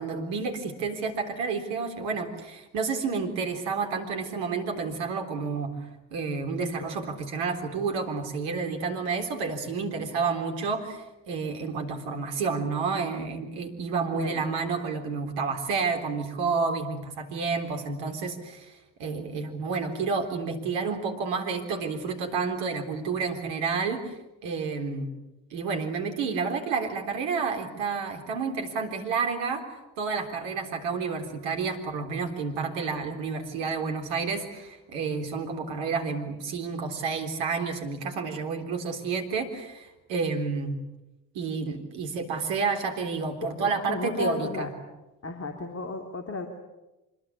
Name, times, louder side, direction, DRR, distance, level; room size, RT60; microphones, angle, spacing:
voice 1, 0.0-5.7 6.1-25.1 25.5-29.6 30.0-40.8 41.3-44.7, right 5 dB, 65° right, 4 dB, 3.8 m, -30 dB
voice 2, 14.1-14.5 43.4-44.7 45.2-46.5, left 3 dB, 30° left, 4 dB, 3.4 m, -33 dB
25.5 x 21.5 x 8.5 m, 1.0 s
figure-of-eight pair, 55°, 48 cm